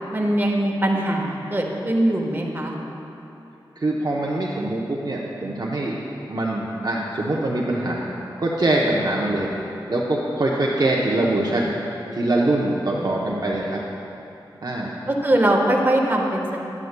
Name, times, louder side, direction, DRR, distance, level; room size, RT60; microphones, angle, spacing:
voice 1, 0.1-2.7 13.0-13.1 15.1-16.5, right 1 dB, 25° right, 0 dB, 1.2 m, -21 dB
voice 2, 3.8-6.0 6.3-8.1 8.4-9.5 9.9-11.7 12.1-13.8 14.6-14.9, right 2 dB, 50° right, -3 dB, 0.7 m, -23 dB
10.5 x 9.3 x 2.2 m, 2.9 s
cardioid pair, 40°, 9 cm